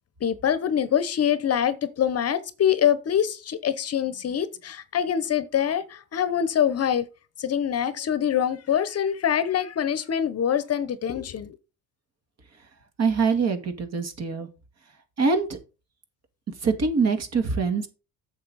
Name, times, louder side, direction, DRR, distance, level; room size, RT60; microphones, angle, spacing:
voice 1, 0.2-7.1 7.4-11.6, left 9 dB, 40° left, 0.9 m, -24 dB
voice 2, 13.0-14.5 15.2-15.6 16.6-17.9, right 4 dB, 45° right, 2.2 m, -24 dB
8.6 x 6.8 x 4.1 m
cardioid pair, 115°, 37 cm